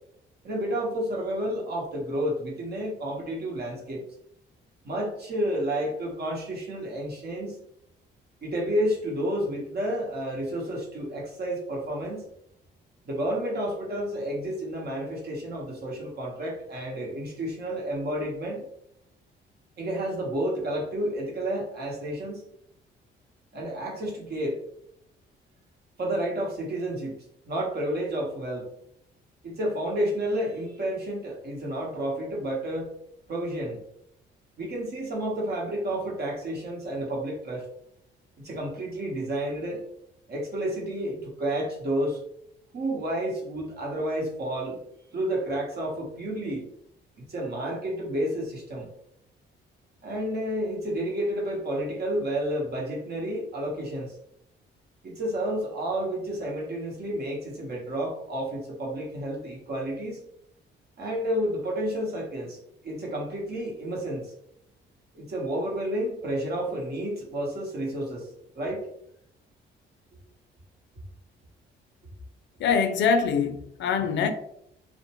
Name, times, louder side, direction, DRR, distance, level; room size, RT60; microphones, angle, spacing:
voice 1, 0.4-4.0 4.8-7.6 8.4-12.3 13.0-18.6 19.8-22.4 23.5-24.6 26.0-27.2 27.4-28.6 29.4-32.9 33.3-33.8 34.6-37.6 38.4-39.8 40.3-42.2 42.7-44.8 45.1-46.6 47.3-48.9 50.0-54.2 55.0-60.2 61.0-62.6 62.8-64.3 65.1-68.3 68.5-68.8, right 1 dB, 55° right, 1.0 m, -30 dB
voice 2, 72.6-74.3, left 6 dB, 65° left, 0.4 m, -24 dB
2.5 x 2.1 x 2.9 m
cardioid pair, 90°, 20 cm